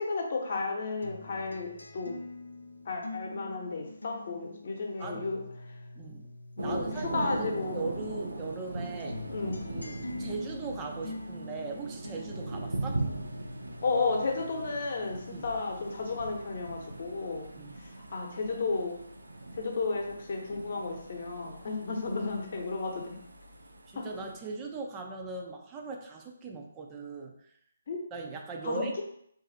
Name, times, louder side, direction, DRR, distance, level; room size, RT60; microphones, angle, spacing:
voice 1, 0.0-2.2 2.8-5.4 6.6-7.8 9.3-9.6 13.8-17.5 17.8-19.0 19.5-23.2 23.9-24.1 27.9-28.0 28.6-29.0, left 3 dB, 45° left, 1 dB, 0.9 m, -33 dB
sound 1, 1.0-7.7 8.0-15.7 16.1-17.0, left 2 dB, 75° left, 0.5 m, -46 dB
voice 2, 6.0-6.3 6.6-9.2 9.7-13.0 15.3-15.5 17.6-17.7 23.9-27.3 28.1-29.0, right 3 dB, 15° right, 1 dB, 0.5 m, -39 dB
Thunder, 6.6-24.4, right 2 dB, 70° right, 0.5 m, -40 dB
3.9 x 2.6 x 4.0 m, 0.70 s
figure-of-eight pair, 140°, 0 cm